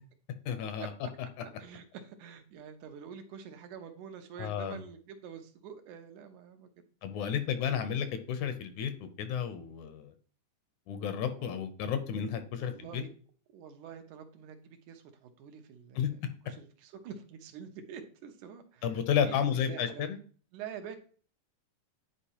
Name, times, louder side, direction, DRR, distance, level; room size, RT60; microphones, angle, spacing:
voice 1, 0.5-0.9 4.4-4.8 7.0-8.9 9.2-10.1 10.9-13.0 16.0-16.1 18.8-20.2, left 8 dB, 75° left, 9 dB, 2.0 m, -32 dB
voice 2, 1.6-6.7 7.2-7.4 7.6-7.8 11.3-11.6 12.5-13.1 13.5-20.1 20.5-21.0, right 7 dB, 75° right, 6 dB, 2.3 m, -47 dB
10.0 x 4.4 x 2.9 m, 0.42 s
omnidirectional pair, 3.6 m